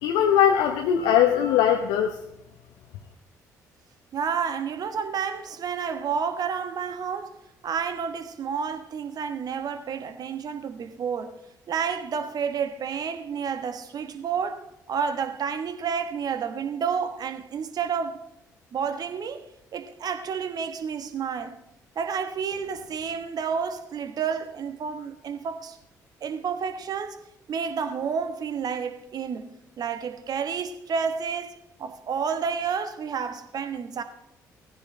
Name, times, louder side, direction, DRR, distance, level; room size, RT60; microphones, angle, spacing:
voice 1, 0.0-2.1, left 9 dB, 65° left, 0.9 m, -20 dB
voice 2, 4.1-11.4 11.7-18.2 18.7-19.4 19.7-21.6 21.9-25.8 26.2-27.2 27.5-29.5 29.8-34.0, right 6 dB, 45° right, 1.3 m, -30 dB
18.5 x 15.0 x 3.3 m
figure-of-eight pair, 45°, 9 cm